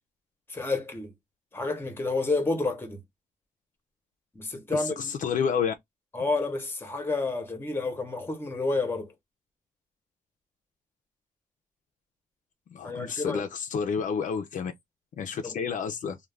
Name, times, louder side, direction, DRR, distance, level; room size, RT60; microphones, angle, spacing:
voice 1, 0.5-1.1 1.5-3.0 4.3-5.1 6.1-9.1 12.8-13.4 15.4-15.6, left 3 dB, 15° left, 0.7 m, -30 dB
voice 2, 4.7-5.8 12.7-14.7 15.2-16.2, left 6 dB, 60° left, 0.4 m, -30 dB
2.3 x 2.1 x 3.1 m
wide cardioid pair, 150°, 14 cm